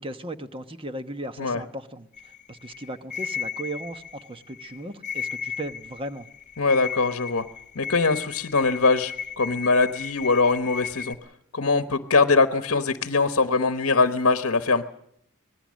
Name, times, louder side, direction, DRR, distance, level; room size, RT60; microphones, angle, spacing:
voice 1, 0.0-6.3, right 1 dB, 25° right, 9 dB, 1.1 m, -37 dB
sound 1, 2.1-11.1, left 7 dB, 30° left, 1.7 m, -35 dB
voice 2, 6.6-7.4 7.7-11.2 11.5-14.8, left 3 dB, 60° left, 9 dB, 1.1 m, -22 dB
25.5 x 19.0 x 6.4 m, 0.70 s
head